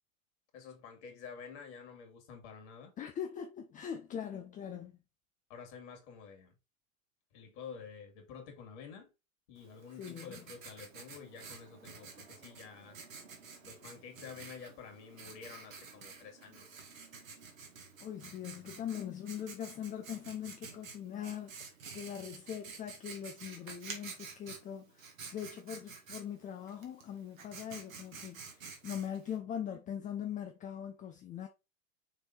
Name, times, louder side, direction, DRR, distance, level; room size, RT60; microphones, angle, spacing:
voice 1, 0.5-2.9 5.5-6.5 7.3-9.1 9.5-13.0 13.6-16.7, left 6 dB, 55° left, 2.6 m, -49 dB
voice 2, 3.0-5.0 10.0-10.4 18.0-31.5, left 9 dB, 20° left, 0.6 m, -42 dB
Writing, 9.6-29.4, right 5 dB, 70° right, 2.1 m, -50 dB
6.6 x 3.5 x 4.1 m
hypercardioid pair, 100°, 41 cm